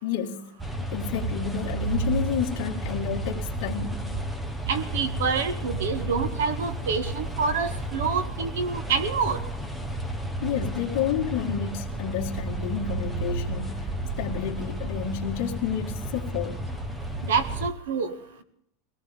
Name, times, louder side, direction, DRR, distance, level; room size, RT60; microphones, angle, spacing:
voice 1, 0.0-4.2 10.4-13.9 14.2-16.6, left 8 dB, 45° left, 0 dB, 2.1 m, -30 dB
sound 1, 0.6-17.7, right 1 dB, 5° right, 0.8 m, -32 dB
voice 2, 4.7-9.4 17.3-18.1, right 5 dB, 90° right, 10 dB, 1.9 m, -27 dB
22.0 x 17.5 x 3.6 m, 0.72 s
supercardioid pair, 180°, 0 cm